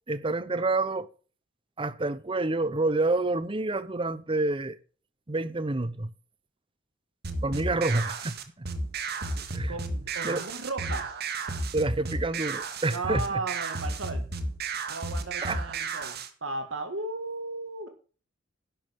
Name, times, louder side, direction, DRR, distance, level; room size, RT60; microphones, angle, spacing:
voice 1, 0.1-1.1 1.8-4.8 5.3-6.1 7.4-8.7 9.5-9.7 10.2-10.5 11.7-13.4 15.4-15.6, right 2 dB, 25° right, 0.8 m, -28 dB
sound 1, 7.2-16.3, right 3 dB, 55° right, 1.9 m, -33 dB
voice 2, 9.2-11.2 12.9-14.3 14.9-17.9, right 3 dB, 85° right, 1.9 m, -35 dB
12.0 x 10.5 x 3.6 m
head